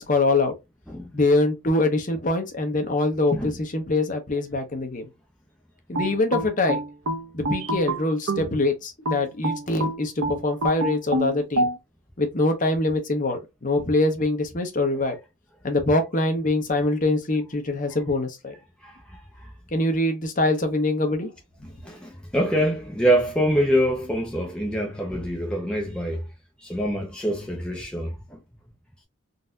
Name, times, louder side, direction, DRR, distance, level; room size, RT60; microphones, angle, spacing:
voice 1, 0.1-0.5 1.1-5.0 5.9-6.8 7.3-11.7 12.2-15.2 15.6-18.5 19.7-21.3, left 2 dB, 35° left, 0.8 m, -24 dB
sound 1, 5.9-8.5 9.1-11.8, right 1 dB, 70° right, 0.8 m, -27 dB
voice 2, 18.8-19.2 21.8-26.2 26.6-28.4, equal, 5° left, 0.5 m, -25 dB
4.0 x 2.6 x 2.2 m
head